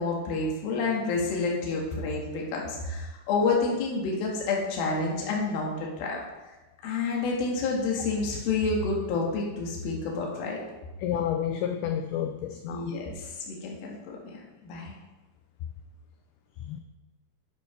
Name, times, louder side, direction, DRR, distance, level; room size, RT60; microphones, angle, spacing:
voice 1, 0.0-5.7 6.0-6.2 6.8-10.6 12.7-14.9, left 3 dB, 60° left, -2 dB, 3.3 m, -29 dB
voice 2, 11.0-12.9 16.6-16.8, left 9 dB, 90° left, 6 dB, 2.2 m, -30 dB
10.0 x 6.0 x 5.7 m, 1.1 s
omnidirectional pair, 5.1 m